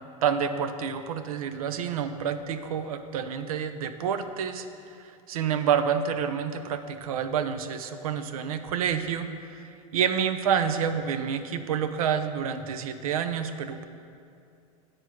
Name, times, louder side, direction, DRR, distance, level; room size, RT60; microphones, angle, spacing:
voice 1, 0.2-4.7 5.3-9.3 9.6-13.8, right 7 dB, 80° right, 10 dB, 0.6 m, -28 dB
8.8 x 4.7 x 6.1 m, 2.5 s
hypercardioid pair, 100°, 18 cm